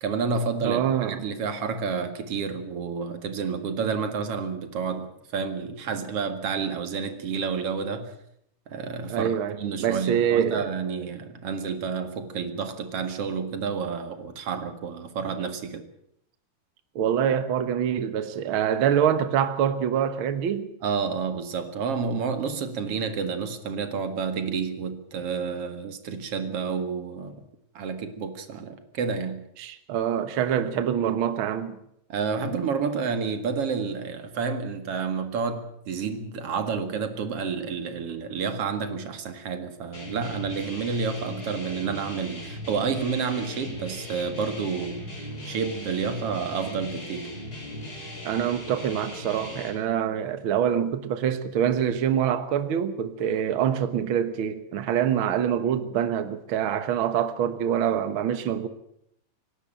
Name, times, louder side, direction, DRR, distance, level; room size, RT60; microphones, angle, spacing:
voice 1, 0.0-8.1 8.7-15.8 20.8-27.4 27.7-29.4 32.1-45.0 45.4-47.3, right 5 dB, 45° right, 2.4 m, -30 dB
voice 2, 0.6-1.2 9.1-10.7 16.9-20.7 29.6-31.8 48.2-58.7, right 9 dB, 85° right, 1.1 m, -25 dB
sound 1, 39.9-49.7, left 1 dB, 25° left, 5.4 m, -38 dB
26.0 x 12.0 x 9.0 m
omnidirectional pair, 4.2 m